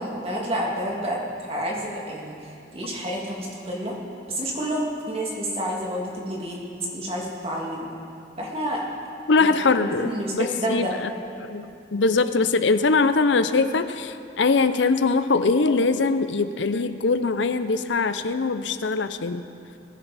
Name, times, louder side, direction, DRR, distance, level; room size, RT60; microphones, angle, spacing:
voice 1, 0.0-4.0 4.3-6.6 6.9-7.9 8.4-8.8 9.3-9.5 9.8-10.9, equal, 30° right, -3 dB, 2.3 m, -29 dB
voice 2, 9.3-10.9 11.4-19.4, left 4 dB, 75° left, 11 dB, 0.6 m, -22 dB
21.5 x 10.5 x 4.2 m, 2.5 s
head